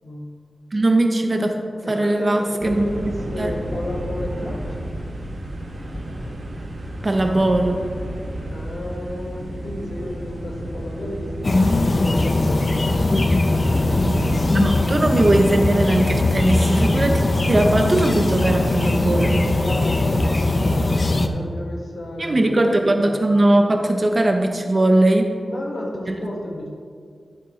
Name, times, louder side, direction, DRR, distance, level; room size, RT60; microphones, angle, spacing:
voice 1, 0.7-1.5 1.9-2.9 3.4-3.5 7.0-7.8 14.5-19.4 22.2-25.3 26.1-26.2, right 1 dB, 35° right, 4 dB, 0.8 m, -19 dB
voice 2, 1.8-4.9 8.5-12.8 13.8-14.2 19.5-23.3 25.5-26.7, left 1 dB, 70° left, -2 dB, 1.8 m, -32 dB
sound 1, 2.6-20.5, right 1 dB, 65° right, 1.9 m, -33 dB
sound 2, 11.4-21.3, left 2 dB, 40° left, 0.5 m, -20 dB
12.5 x 7.4 x 3.2 m, 2.1 s
wide cardioid pair, 115°, 0 cm